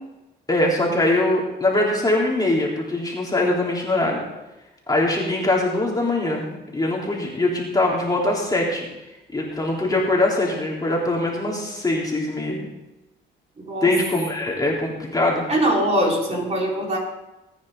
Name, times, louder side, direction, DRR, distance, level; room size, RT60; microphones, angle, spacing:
voice 1, 0.5-4.2 4.9-8.9 9.3-12.6 13.8-15.4, left 2 dB, 20° left, -3 dB, 3.5 m, -22 dB
voice 2, 15.5-17.0, right 1 dB, 35° right, -2 dB, 4.5 m, -22 dB
20.0 x 9.7 x 3.9 m, 0.99 s
cardioid pair, 90°, 20 cm